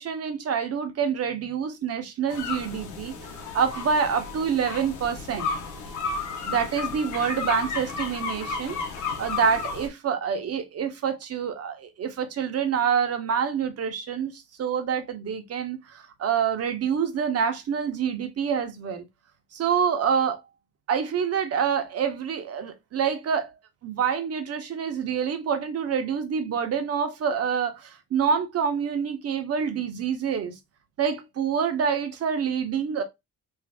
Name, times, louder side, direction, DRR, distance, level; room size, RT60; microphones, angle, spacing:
voice 1, 0.0-3.1 3.5-5.5 6.5-19.0 19.5-20.4 20.9-23.5 23.8-30.6 31.0-33.0, right 7 dB, 55° right, 0.8 m, -27 dB
sound 1, 2.3-9.9, left 5 dB, 75° left, 0.9 m, -33 dB
2.7 x 2.7 x 3.3 m
cardioid pair, 90°, 30 cm